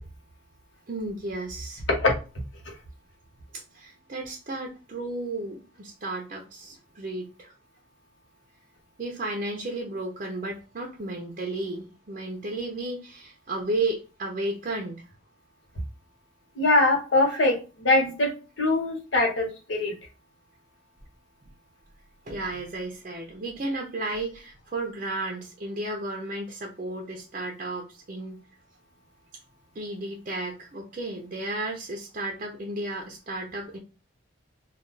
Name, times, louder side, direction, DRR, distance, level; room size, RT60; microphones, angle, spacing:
voice 1, 0.9-1.8 3.5-7.5 9.0-15.1 22.2-28.4 29.7-33.8, right 2 dB, 40° right, 1 dB, 0.5 m, -33 dB
voice 2, 16.6-18.3 18.6-19.9, left 2 dB, 75° left, 0 dB, 1.1 m, -22 dB
2.3 x 2.3 x 3.8 m, 0.32 s
head